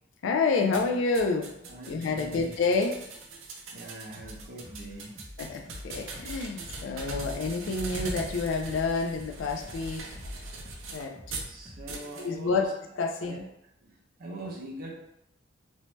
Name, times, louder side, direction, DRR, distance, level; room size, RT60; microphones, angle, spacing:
voice 1, 0.2-1.5 1.9-3.0 5.4-10.1 10.9-11.4 11.9-12.7 13.0-13.4, left 4 dB, 70° left, 5 dB, 0.4 m, -29 dB
sound 1, 0.7-11.5 11.9-12.3, right 2 dB, 85° right, 0.5 m, -41 dB
voice 2, 1.6-2.5 3.7-5.3 11.4-12.7 13.2-13.5 13.8-15.0, right 1 dB, 50° right, -1 dB, 0.6 m, -43 dB
sound 2, 4.2-12.0, equal, 5° right, 0.6 m, -48 dB
2.7 x 2.1 x 3.0 m, 0.79 s
head